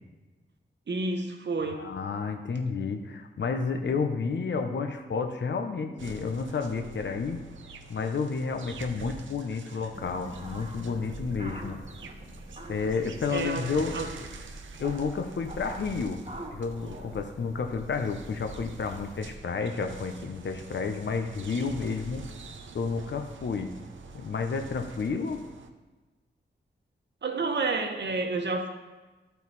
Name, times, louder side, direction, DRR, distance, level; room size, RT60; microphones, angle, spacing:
voice 1, 0.9-1.9 13.3-14.1 27.2-28.7, right 3 dB, 65° right, 4 dB, 1.1 m, -30 dB
voice 2, 1.6-7.4 7.9-11.8 12.7-14.0 14.8-16.2 16.5-22.2 22.7-23.7 24.1-25.4, left 5 dB, 70° left, 6 dB, 0.8 m, -31 dB
sound 1, 4.1-7.3, right 2 dB, 20° left, 1.8 m, -50 dB
sound 2, 6.0-25.7, right 4 dB, 90° right, 0.6 m, -46 dB
sound 3, 9.9-19.4, right 1 dB, 35° right, 1.6 m, -44 dB
12.5 x 4.6 x 4.0 m, 1.2 s
cardioid pair, 50°, 19 cm